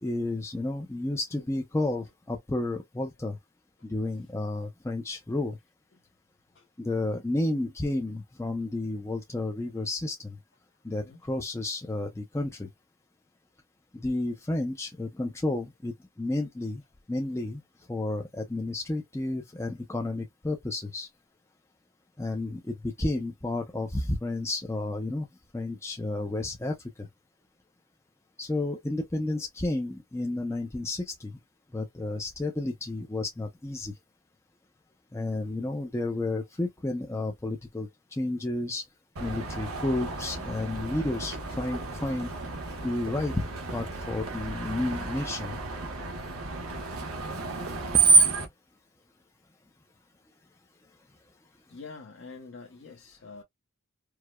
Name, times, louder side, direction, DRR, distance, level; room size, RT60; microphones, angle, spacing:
voice 1, 0.0-3.4 3.8-5.6 6.8-10.4 10.8-12.7 13.9-16.8 17.1-21.1 22.2-25.3 25.5-27.1 28.4-31.4 31.7-34.0 35.1-38.9 39.2-42.3 42.8-45.6, left 2 dB, 10° left, 0.4 m, -31 dB
Screech, 39.2-48.5, right 4 dB, 80° right, 1.0 m, -29 dB
voice 2, 51.7-53.4, left 4 dB, 55° left, 0.9 m, -46 dB
4.7 x 2.0 x 2.2 m
head